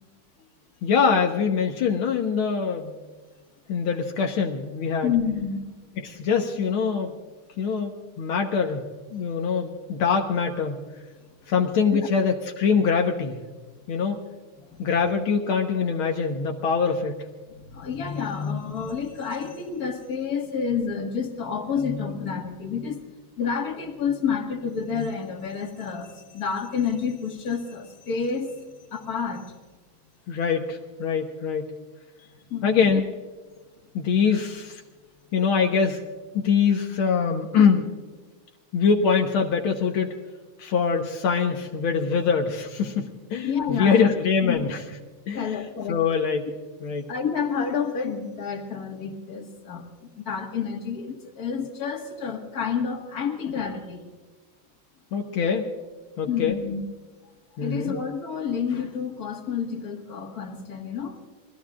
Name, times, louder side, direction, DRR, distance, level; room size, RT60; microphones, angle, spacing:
voice 1, 0.8-3.0 3.7-5.1 6.0-7.1 7.6-10.8 11.5-13.4 13.9-14.2 14.8-17.2 30.3-31.7 32.6-33.0 33.9-34.8 35.3-36.0 36.3-37.9 38.7-40.2 40.6-44.8 45.3-45.5 45.9-46.5 46.8-47.1 55.1-55.7 56.2-56.6 57.6-57.9, left 6 dB, 80° left, 3 dB, 1.9 m, -23 dB
voice 2, 5.0-5.7 11.9-12.1 14.6-14.9 17.7-23.0 23.4-28.6 28.9-29.5 32.2-32.9 43.4-44.1 44.4-44.6 45.3-46.0 47.1-54.0 56.3-56.8 57.6-61.2, left 6 dB, 45° left, 3 dB, 2.2 m, -29 dB
26.0 x 18.5 x 2.5 m, 1.3 s
omnidirectional pair, 2.3 m